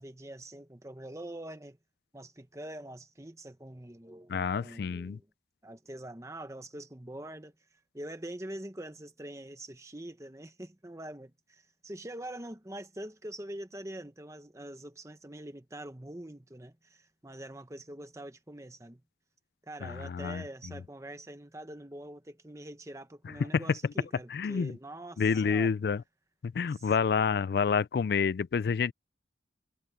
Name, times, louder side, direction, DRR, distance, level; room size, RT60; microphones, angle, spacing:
voice 1, 0.0-1.8 2.1-5.3 5.6-7.5 7.9-19.0 19.6-25.7 26.7-27.4, right 1 dB, 15° right, 1.0 m, -44 dB
voice 2, 4.3-5.2 19.8-20.4 23.5-23.6 24.3-24.8 25.2-26.0 26.4-28.9, left 6 dB, 55° left, 0.3 m, -28 dB
head